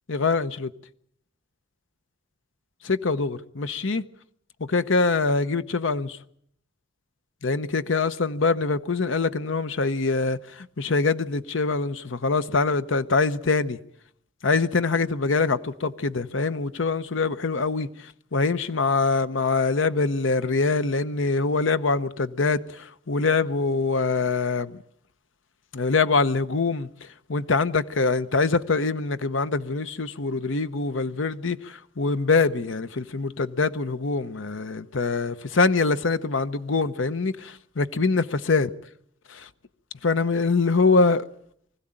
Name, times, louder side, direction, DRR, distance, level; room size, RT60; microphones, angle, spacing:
voice 1, 0.1-0.7 2.8-4.0 4.7-6.2 7.4-13.8 14.4-17.9 18.3-24.8 25.7-26.9 27.3-38.7 39.3-39.5 40.0-41.3, left 4 dB, 70° left, 0.9 m, -24 dB
24.0 x 16.0 x 8.8 m
head